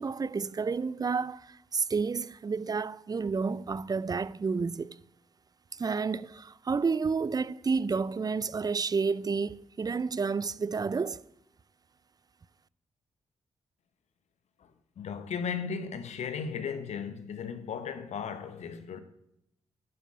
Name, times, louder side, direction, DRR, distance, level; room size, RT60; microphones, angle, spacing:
voice 1, 0.0-5.0 5.7-11.2, right 5 dB, 35° right, 0.5 m, -30 dB
voice 2, 15.0-19.0, left 6 dB, 75° left, 1.1 m, -36 dB
11.0 x 5.4 x 8.7 m
supercardioid pair, 50°, 12 cm